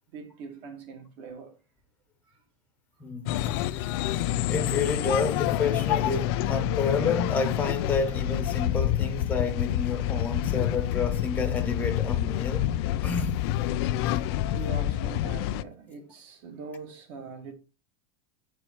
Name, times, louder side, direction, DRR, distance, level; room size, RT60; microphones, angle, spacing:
voice 1, 0.1-1.6 2.2-2.4 3.5-3.6 14.5-17.5, right 4 dB, 50° right, 2.2 m, -42 dB
voice 2, 3.0-12.7 13.0-13.4, left 4 dB, 10° left, 1.0 m, -30 dB
sound 1, 3.3-15.6, left 12 dB, 50° left, 0.4 m, -27 dB
8.8 x 4.6 x 4.6 m
supercardioid pair, 165°, 17 cm